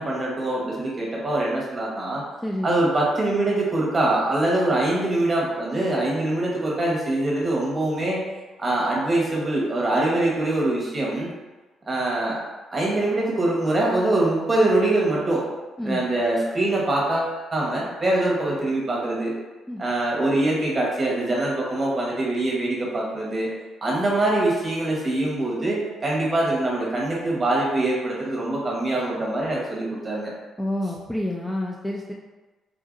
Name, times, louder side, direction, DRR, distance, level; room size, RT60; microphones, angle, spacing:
voice 1, 0.0-2.2 2.6-8.2 8.6-11.3 11.9-12.4 12.7-15.5 15.8-19.3 19.8-23.5 23.8-30.3, right 2 dB, 30° right, -4 dB, 1.1 m, -23 dB
voice 2, 2.4-2.7 15.8-16.0 19.7-19.8 30.6-32.1, left 1 dB, 10° left, -2 dB, 0.3 m, -28 dB
3.7 x 2.5 x 2.5 m, 1.2 s
cardioid pair, 90°, 0 cm